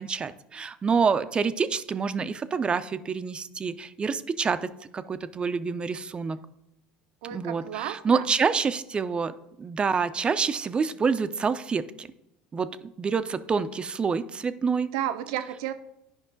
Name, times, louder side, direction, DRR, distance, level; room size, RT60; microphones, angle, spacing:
voice 1, 0.0-6.4 7.3-12.1 12.5-14.9, right 5 dB, 25° right, 12 dB, 0.5 m, -27 dB
voice 2, 7.2-8.3 14.9-15.7, right 11 dB, 75° right, 10 dB, 0.7 m, -32 dB
9.7 x 5.3 x 4.0 m, 0.86 s
hypercardioid pair, 85°, 4 cm